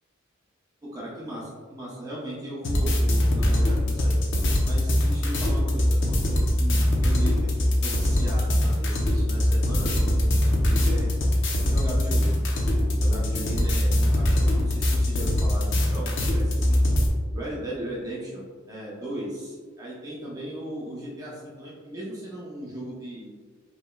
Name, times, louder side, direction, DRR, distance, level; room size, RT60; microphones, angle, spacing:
voice 1, 0.8-4.2 4.7-11.1 11.7-16.8 17.3-23.3, right 1 dB, 20° right, -7 dB, 0.8 m, -37 dB
sound 1, 2.6-17.1, left 1 dB, 65° left, 0.7 m, -22 dB
5.3 x 3.2 x 2.3 m, 1.5 s
head